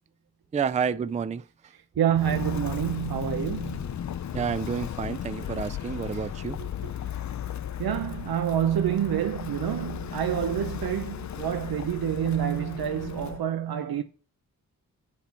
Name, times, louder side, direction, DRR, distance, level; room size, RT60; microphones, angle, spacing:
voice 1, 0.5-1.4 4.3-6.6, right 6 dB, 20° right, 0.3 m, -29 dB
voice 2, 2.0-4.0 6.5-6.9 7.8-14.0, right 10 dB, 85° right, 0.8 m, -28 dB
Walk footsteps, 2.1-13.4, left 10 dB, 50° left, 0.5 m, -35 dB
8.2 x 4.3 x 5.6 m
wide cardioid pair, 105°, 36 cm